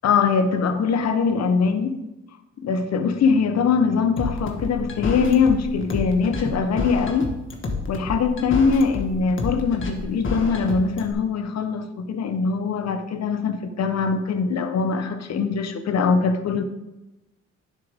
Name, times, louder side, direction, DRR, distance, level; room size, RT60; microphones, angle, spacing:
voice 1, 0.0-2.0 2.6-7.3 7.9-16.6, left 5 dB, 60° left, 9 dB, 1.0 m, -22 dB
sound 1, 4.2-11.1, left 3 dB, 40° left, 1.6 m, -29 dB
9.6 x 7.6 x 3.6 m, 0.99 s
cardioid pair, 90°, 30 cm